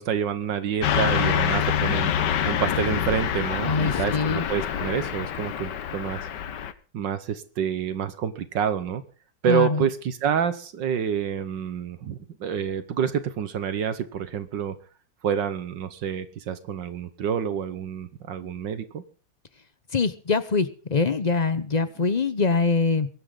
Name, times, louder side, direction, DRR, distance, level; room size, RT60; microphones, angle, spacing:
voice 1, 0.0-2.1 2.4-6.2 6.9-9.0 9.4-14.8 15.2-19.0, right 8 dB, 75° right, 12 dB, 1.8 m, -28 dB
Car passing by / Truck, 0.8-6.7, left 9 dB, 70° left, 1.6 m, -26 dB
voice 2, 3.6-4.5 9.5-9.9 19.9-23.1, left 4 dB, 35° left, 13 dB, 0.6 m, -24 dB
23.0 x 11.5 x 3.9 m, 0.38 s
omnidirectional pair, 2.0 m